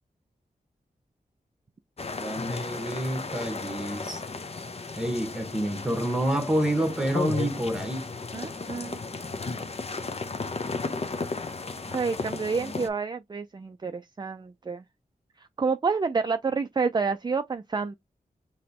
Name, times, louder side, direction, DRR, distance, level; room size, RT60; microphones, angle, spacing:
sound 1, 2.0-12.9, left 3 dB, 40° left, 0.7 m, -34 dB
voice 1, 2.2-4.2 5.0-8.1, right 1 dB, 5° right, 1.4 m, -28 dB
voice 2, 8.3-9.0 11.9-14.8 15.4-17.9, right 4 dB, 30° right, 0.4 m, -29 dB
5.0 x 3.0 x 2.9 m
wide cardioid pair, 70°, 15 cm